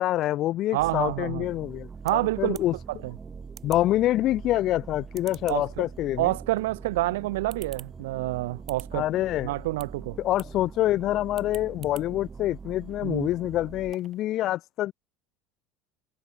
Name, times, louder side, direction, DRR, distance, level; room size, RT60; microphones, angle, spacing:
voice 1, 0.0-2.7 3.6-6.3 8.9-9.5 10.2-14.9, left 14 dB, 55° left, 0.4 m, -26 dB
voice 2, 0.7-1.5 2.0-2.6 2.9-3.1 5.5-5.8 6.2-9.1 9.4-10.2 13.0-13.3, right 18 dB, 80° right, 0.3 m, -28 dB
sound 1, 0.8-13.9, right 5 dB, 25° right, 4.2 m, -43 dB
sound 2, 1.4-14.2, right 11 dB, 45° right, 7.8 m, -53 dB
supercardioid pair, 95°, 0 cm